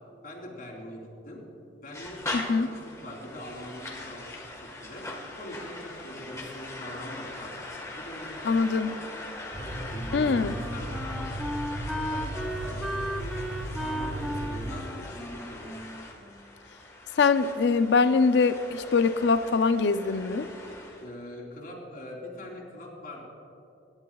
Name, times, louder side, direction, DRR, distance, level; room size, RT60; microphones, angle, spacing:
voice 1, 0.2-1.4 1.8-4.5 4.8-5.0 5.3-7.5 8.0-9.0 9.6-13.4 13.8-15.8 21.0-23.2, left 1 dB, 50° left, -4 dB, 3.5 m, -43 dB
sound 1, 1.9-21.1, left 2 dB, 15° left, 1.5 m, -41 dB
voice 2, 2.3-2.7 8.4-9.0 10.1-10.5 17.2-20.5, left 4 dB, 65° left, 11 dB, 0.5 m, -23 dB
sound 2, 9.5-14.7, right 1 dB, 35° right, 2.1 m, -36 dB
Wind instrument woodwind instrument, 9.9-16.8, equal, ahead, 0.6 m, -36 dB
25.5 x 11.5 x 2.4 m, 2.6 s
head